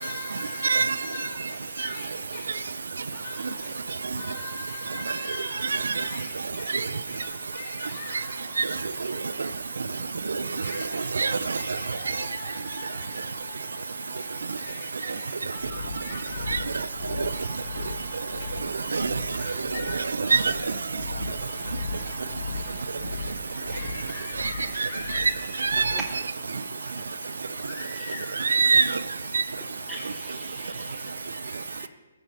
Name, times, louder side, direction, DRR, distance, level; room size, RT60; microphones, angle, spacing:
voice 1, 0.0-1.3 1.8-2.0 3.2-3.3 4.2-5.5 6.0-6.2 7.5-8.3 10.6-10.8 11.6-12.4 15.7-15.8 16.0-16.2 19.7-19.9 23.7-25.9 27.7-28.3 28.7-28.8, left 3 dB, 30° left, 2.6 m, -40 dB
voice 2, 0.6-1.0 5.7-6.0 6.7-6.8 8.6-8.7 11.1-11.6 16.5-16.6 17.2-17.3 18.9-19.1 20.2-20.5 24.4-24.5 24.8-24.9 25.1-25.3 25.6-26.0 28.4-29.0 29.3-29.4, right 4 dB, 70° right, 0.3 m, -23 dB
sound 1, 15.6-26.1, left 4 dB, 55° left, 1.2 m, -38 dB
voice 3, 29.9-31.9, right 1 dB, 5° right, 0.6 m, -43 dB
13.5 x 5.3 x 4.1 m
figure-of-eight pair, 130°, 0 cm